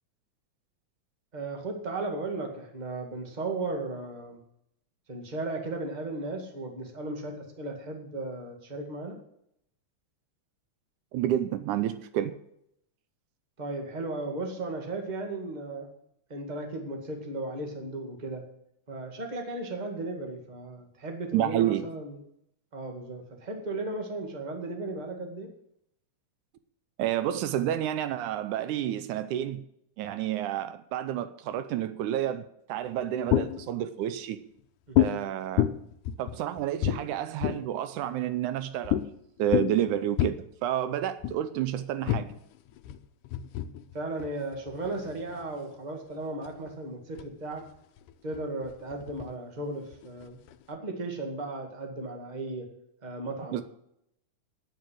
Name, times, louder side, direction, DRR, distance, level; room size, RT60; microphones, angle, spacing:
voice 1, 1.3-4.4 5.1-9.2 13.6-15.9 16.3-18.4 18.9-22.2 22.7-25.5 34.9-35.2 43.9-47.6 48.2-50.4 50.7-52.7 53.0-53.6, right 2 dB, 15° right, 1.6 m, -35 dB
voice 2, 11.1-12.3 21.3-21.9 27.0-29.7 30.0-34.4 35.0-35.6 36.2-39.0 39.4-42.3 53.5-53.6, right 11 dB, 80° right, 2.1 m, -30 dB
sound 1, 32.8-33.8 35.0-35.2 35.6-37.8 38.8-39.1 39.4-40.3 41.2-41.4 42.1-45.4 46.1-46.7 47.2-47.3 47.5-49.3 49.9-50.8, left 13 dB, 90° left, 2.2 m, -29 dB
9.3 x 9.3 x 7.7 m
omnidirectional pair, 3.6 m